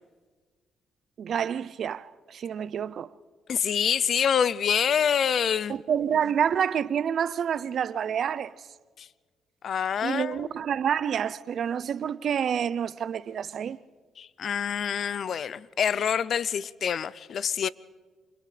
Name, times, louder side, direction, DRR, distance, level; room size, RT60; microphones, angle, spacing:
voice 1, 1.2-3.1 5.7-8.5 10.0-13.8, right 8 dB, 60° right, 0.6 m, -28 dB
voice 2, 3.5-5.7 9.0-9.1 9.6-10.5 14.2-17.7, left 8 dB, 60° left, 0.6 m, -26 dB
29.0 x 27.0 x 3.4 m
cardioid pair, 90°, 0 cm